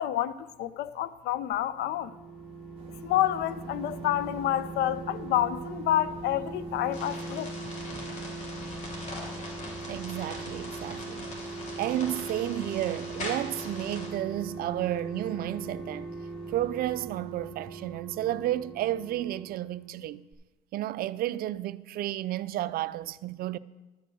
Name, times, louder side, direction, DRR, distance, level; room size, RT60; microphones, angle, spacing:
voice 1, 0.0-2.1 3.0-7.5, left 12 dB, 75° left, 0.6 m, -28 dB
sound 1, 1.5-20.0 20.3-20.4, right 3 dB, 5° left, 3.0 m, -40 dB
sound 2, 2.8-17.5, right 4 dB, 35° right, 2.1 m, -52 dB
sound 3, 6.9-14.1, left 2 dB, 45° left, 3.0 m, -41 dB
voice 2, 9.9-11.3 11.8-16.1 16.5-20.2 20.7-23.6, right 13 dB, 60° right, 0.4 m, -32 dB
11.5 x 5.4 x 7.8 m
cardioid pair, 110°, 17 cm